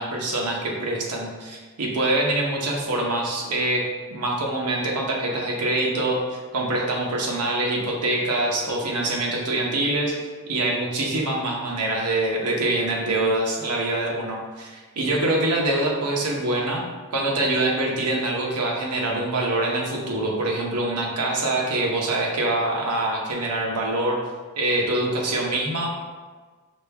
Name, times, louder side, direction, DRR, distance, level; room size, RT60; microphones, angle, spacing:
voice 1, 0.0-10.2 10.5-16.8 17.1-24.2 24.6-25.9, right 2 dB, 90° right, -1 dB, 0.8 m, -25 dB
5.0 x 2.3 x 3.4 m, 1.4 s
head